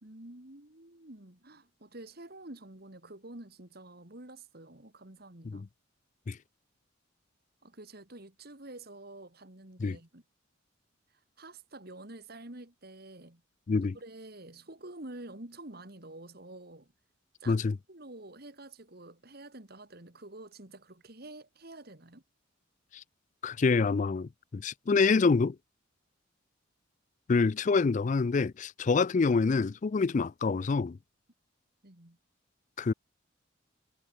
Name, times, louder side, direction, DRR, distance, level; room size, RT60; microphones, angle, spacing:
voice 1, 0.0-5.6 7.6-10.2 11.4-13.4 13.8-16.9 17.4-22.2 31.8-32.2, right 2 dB, 50° right, 2.5 m, -48 dB
voice 2, 23.4-25.6 27.3-31.0 32.8-32.9, left 4 dB, 40° left, 0.4 m, -26 dB
head